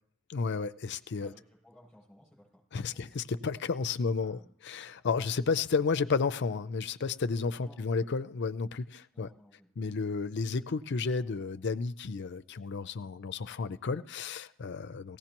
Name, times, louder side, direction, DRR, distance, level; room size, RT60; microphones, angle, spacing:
voice 1, 0.3-1.3 2.7-4.4 4.7-9.3 9.8-15.2, left 4 dB, 50° left, 0.4 m, -32 dB
voice 2, 1.2-2.6 2.9-3.1 4.2-4.5 7.5-8.1 9.1-9.7, equal, ahead, 7.9 m, -58 dB
17.5 x 16.0 x 3.0 m
head